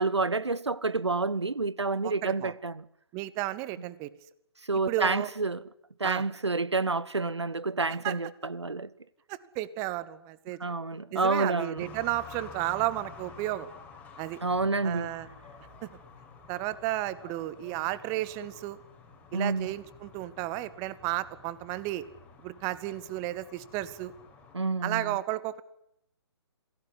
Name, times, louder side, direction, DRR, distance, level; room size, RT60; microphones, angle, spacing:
voice 1, 0.0-2.8 4.7-5.6 6.0-8.9 10.6-11.8 14.4-15.1 19.3-19.7 24.5-25.2, right 3 dB, 75° right, 1.2 m, -29 dB
voice 2, 2.0-2.5 3.1-4.1 4.9-5.3 6.0-6.2 8.0-8.1 9.3-10.6 11.1-13.7 14.2-14.4 14.8-15.3 15.8-15.9 16.5-18.8 19.3-22.0 22.4-24.1 24.8-25.6, right 16 dB, 20° right, 1.1 m, -33 dB
sound 1, 11.8-24.6, left 4 dB, 10° left, 4.9 m, -50 dB
26.5 x 17.5 x 9.8 m
figure-of-eight pair, 135°, 14 cm